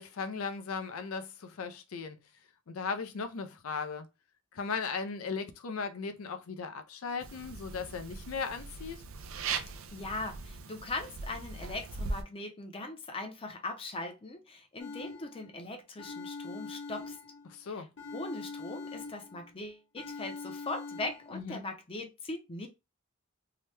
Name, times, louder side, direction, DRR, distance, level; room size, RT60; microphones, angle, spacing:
voice 1, 0.0-2.2 2.7-4.1 4.5-9.0 17.5-17.9 21.3-21.6, left 5 dB, 85° left, 0.5 m, -37 dB
sound 1, 7.2-12.2, right 4 dB, 65° right, 0.5 m, -40 dB
voice 2, 9.9-17.2 17.6-17.9 18.1-22.7, left 2 dB, 25° left, 0.6 m, -40 dB
sound 2, 14.8-15.6 16.0-17.6 18.0-19.5 20.0-21.4, left 4 dB, 60° left, 0.8 m, -43 dB
2.8 x 2.2 x 3.2 m
head